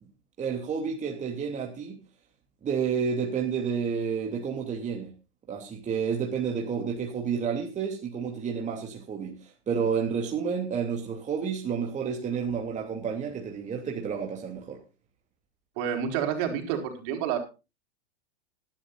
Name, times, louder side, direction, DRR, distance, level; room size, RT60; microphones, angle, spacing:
voice 1, 0.4-2.0 2.6-5.1 5.5-14.8, right 6 dB, 20° right, 1 dB, 2.9 m, -30 dB
voice 2, 15.8-17.4, right 8 dB, 50° right, 4 dB, 4.7 m, -29 dB
20.0 x 12.0 x 2.5 m, 0.29 s
hypercardioid pair, 115°, 34 cm